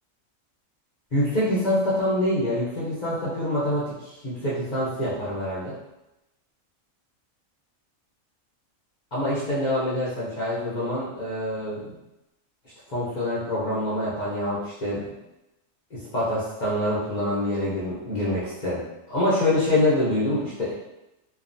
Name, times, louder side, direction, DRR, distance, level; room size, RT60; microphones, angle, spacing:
voice 1, 1.1-5.8 9.1-12.0 12.9-15.1 15.9-18.8 19.1-20.7, left 1 dB, 40° left, -9 dB, 0.7 m, -25 dB
2.9 x 2.3 x 2.5 m, 0.94 s
omnidirectional pair, 1.4 m